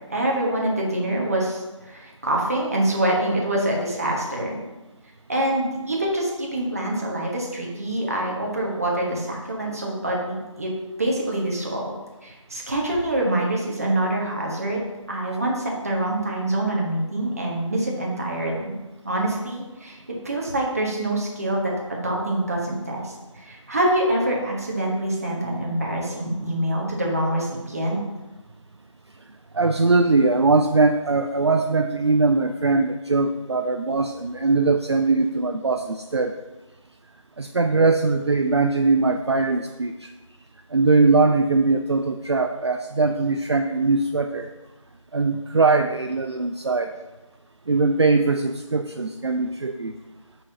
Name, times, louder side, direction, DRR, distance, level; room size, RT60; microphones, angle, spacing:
voice 1, 0.1-4.6 5.3-10.7 11.0-12.0 12.2-14.8 15.1-18.7 19.0-20.0 20.2-28.0, right 1 dB, 30° right, -2 dB, 1.2 m, -25 dB
voice 2, 29.5-36.3 37.4-40.1 40.7-44.5 45.1-46.9 47.7-49.9, right 3 dB, 55° right, 6 dB, 0.4 m, -21 dB
7.8 x 5.7 x 2.8 m, 1.1 s
figure-of-eight pair, 175°, 17 cm